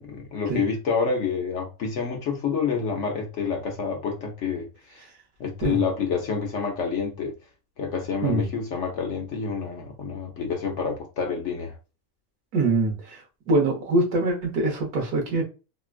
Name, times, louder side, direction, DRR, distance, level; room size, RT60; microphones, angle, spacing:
voice 1, 0.0-5.0 5.4-7.3 7.8-11.7, left 5 dB, 60° left, 0.9 m, -28 dB
voice 2, 12.5-13.2 13.5-15.4, right 2 dB, 80° right, 1.6 m, -23 dB
3.7 x 2.3 x 2.4 m
omnidirectional pair, 1.6 m